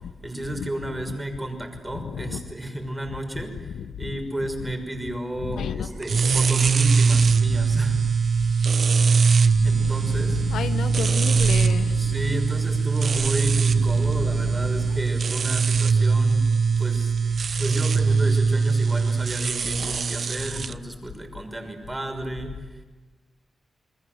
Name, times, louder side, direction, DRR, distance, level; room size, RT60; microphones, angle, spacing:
voice 1, 0.2-8.0 9.6-10.4 11.9-22.8, right 1 dB, 20° right, 6.2 m, -32 dB
voice 2, 1.9-2.4 3.7-4.2 5.4-6.2 7.4-7.8 8.4-8.5 9.5-12.8 13.5-15.0 20.5-20.7, left 8 dB, 90° left, 1.0 m, -33 dB
sound 1, 6.0-20.7, right 5 dB, 60° right, 0.8 m, -21 dB
29.5 x 20.5 x 8.0 m
cardioid pair, 60°, 0 cm